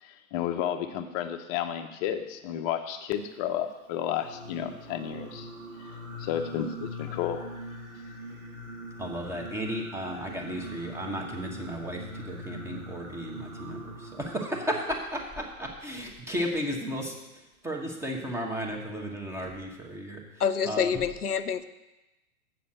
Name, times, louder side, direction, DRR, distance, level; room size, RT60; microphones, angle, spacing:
voice 1, 0.0-5.5 5.8-7.5, left 10 dB, 30° left, 7 dB, 0.8 m, -32 dB
Singing, 4.1-14.8, equal, 65° right, 2.5 m, -42 dB
voice 2, 9.0-21.0, equal, 5° right, 1 dB, 1.1 m, -34 dB
voice 3, 20.4-21.6, left 7 dB, 90° left, 12 dB, 0.6 m, -27 dB
7.6 x 7.0 x 6.5 m, 1.0 s
figure-of-eight pair, 105°, 44 cm